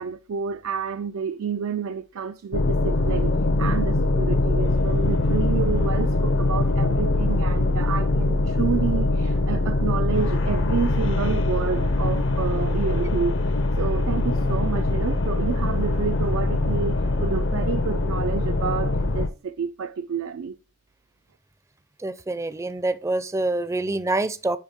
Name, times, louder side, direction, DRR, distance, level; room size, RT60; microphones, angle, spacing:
voice 1, 0.0-3.3 3.6-20.6, right 6 dB, 75° right, 0.4 m, -29 dB
sound 1, 2.5-19.3, left 2 dB, 60° left, 0.7 m, -22 dB
voice 2, 22.0-24.6, right 2 dB, 15° right, 0.4 m, -26 dB
10.0 x 3.6 x 3.5 m
head